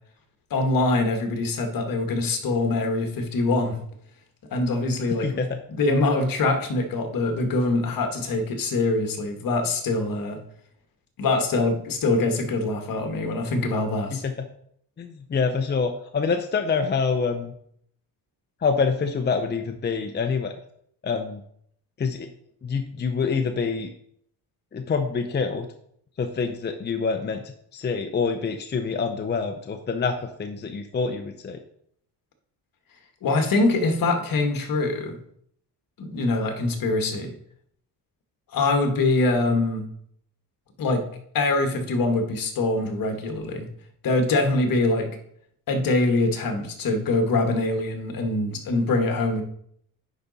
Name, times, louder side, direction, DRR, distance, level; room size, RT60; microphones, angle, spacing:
voice 1, 0.5-3.8 4.5-5.4 5.7-10.4 11.2-14.2 33.2-35.2 36.0-37.3 38.5-39.9 40.8-41.0 41.3-43.7 44.0-45.1 45.7-49.4, left 2 dB, 60° left, 5 dB, 1.7 m, -24 dB
voice 2, 5.2-5.6 14.1-14.3 15.0-17.5 18.6-20.6 21.0-21.4 22.0-22.3 22.6-23.9 24.7-25.7 26.2-27.4 27.7-31.6, left 5 dB, 25° left, 5 dB, 0.7 m, -26 dB
10.0 x 5.1 x 4.1 m, 0.67 s
cardioid pair, 120°, 39 cm